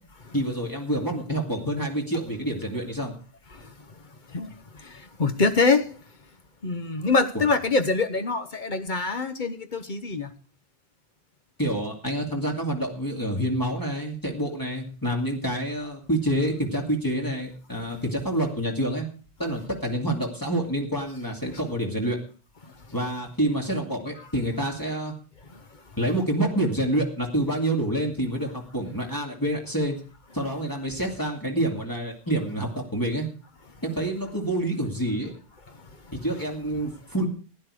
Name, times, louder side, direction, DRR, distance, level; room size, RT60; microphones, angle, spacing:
voice 1, 0.3-3.2 11.6-19.1 19.4-22.2 22.9-25.1 26.0-30.0 30.3-33.3 33.8-35.3 36.1-37.3, right 1 dB, 20° left, 2.5 m, -27 dB
voice 2, 4.3-6.0 6.6-10.3 25.5-25.6 35.7-35.8, left 4 dB, 50° left, 1.2 m, -25 dB
15.5 x 10.5 x 4.9 m
omnidirectional pair, 1.0 m